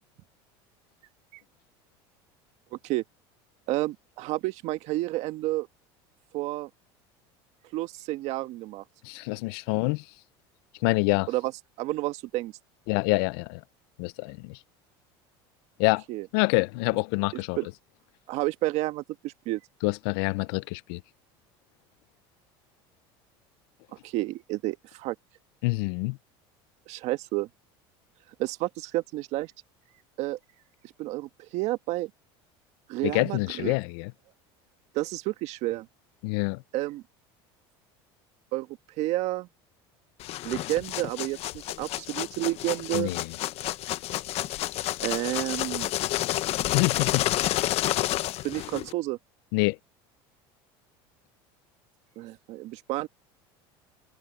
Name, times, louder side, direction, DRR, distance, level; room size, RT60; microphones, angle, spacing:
voice 1, 2.7-3.0 3.7-5.7 6.3-6.7 7.7-8.8 11.3-11.5 11.8-12.5 16.1-16.3 17.6-17.7 18.3-19.6 24.0-25.1 26.9-27.5 28.4-29.5 30.2-30.4 31.0-32.1 32.9-33.8 34.9-35.9 36.7-37.0 38.5-38.7 39.0-39.5 40.4-43.2 45.0-45.9 48.4-49.2 52.2-53.1, right 18 dB, 60° right, 1.5 m, -30 dB
voice 2, 9.0-10.0 10.8-11.3 12.9-13.6 14.0-14.6 15.8-16.0 16.3-17.6 19.8-21.0 25.6-26.2 33.0-34.1 36.2-36.6 42.9-43.3 46.7-47.3 49.5-49.8, left 26 dB, 75° left, 0.5 m, -26 dB
sound 1, 40.2-48.9, left 15 dB, 55° left, 1.1 m, -30 dB
supercardioid pair, 115°, 13 cm